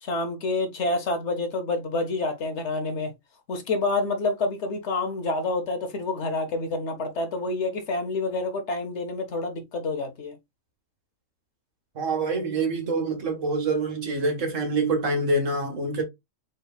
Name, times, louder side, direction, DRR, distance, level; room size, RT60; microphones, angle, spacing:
voice 1, 0.0-3.1 3.5-10.3, left 3 dB, 60° left, 1.2 m, -28 dB
voice 2, 11.9-16.0, right 3 dB, 70° right, 1.7 m, -26 dB
4.1 x 3.9 x 2.3 m
omnidirectional pair, 1.4 m